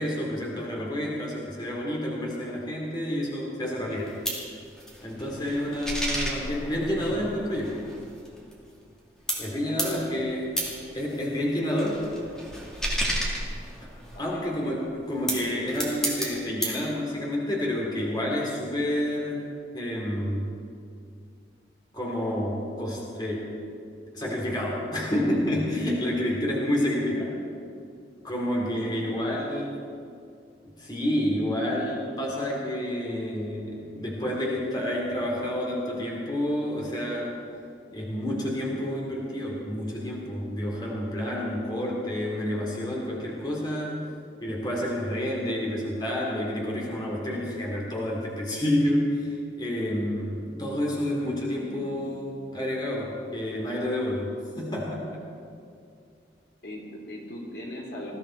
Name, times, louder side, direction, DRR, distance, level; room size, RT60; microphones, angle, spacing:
voice 1, 0.0-4.1 5.0-7.8 9.4-10.6 10.9-12.1 14.2-20.6 21.9-23.5 24.1-27.3 28.2-29.9 30.8-37.4 37.9-44.0 44.4-55.2, left 1 dB, 25° left, -3 dB, 2.5 m, -29 dB
sound 1, 3.9-9.0 9.3-14.3 15.0-16.8, equal, 5° left, 2.2 m, -32 dB
voice 2, 9.6-10.0 14.1-14.4 26.7-27.2 28.7-29.4 50.6-50.8 51.5-52.1 56.6-58.2, left 1 dB, 65° left, -1 dB, 3.2 m, -40 dB
20.5 x 14.0 x 4.5 m, 2.4 s
head